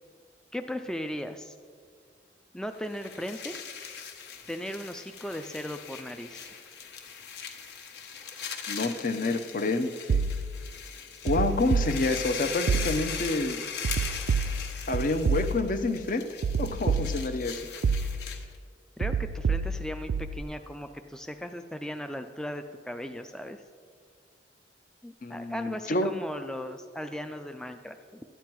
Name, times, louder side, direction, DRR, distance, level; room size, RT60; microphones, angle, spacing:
voice 1, 0.5-1.6 2.5-3.6 4.5-6.5 19.0-23.6 25.0-28.2, equal, 5° left, 6 dB, 0.3 m, -37 dB
sound 1, 2.8-18.6, left 7 dB, 65° left, 1.2 m, -40 dB
voice 2, 8.7-10.2 11.2-13.6 14.9-16.2 16.6-17.6 25.2-26.1, left 2 dB, 50° left, 9 dB, 0.7 m, -28 dB
sound 2, 10.1-10.7 11.3-12.3 12.7-13.3 13.8-15.9 16.4-17.5 17.8-18.5 19.0-20.4, right 4 dB, 85° right, 0.4 m, -29 dB
13.0 x 9.1 x 4.6 m, 2.1 s
head